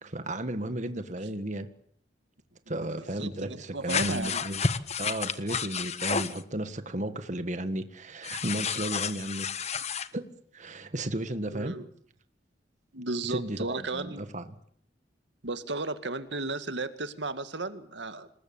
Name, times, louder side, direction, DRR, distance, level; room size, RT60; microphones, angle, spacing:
voice 1, 0.0-1.7 2.7-4.7 5.0-9.8 10.1-10.3 10.5-11.7 13.3-14.4, right 1 dB, 45° right, 9 dB, 1.8 m, -34 dB
voice 2, 3.2-4.4 11.5-11.9 12.9-14.2 15.4-18.3, right 3 dB, 85° right, 10 dB, 2.0 m, -34 dB
sound 1, 3.9-6.4 8.2-10.1, left 5 dB, 40° left, 1.3 m, -31 dB
27.0 x 20.5 x 8.8 m, 0.64 s
head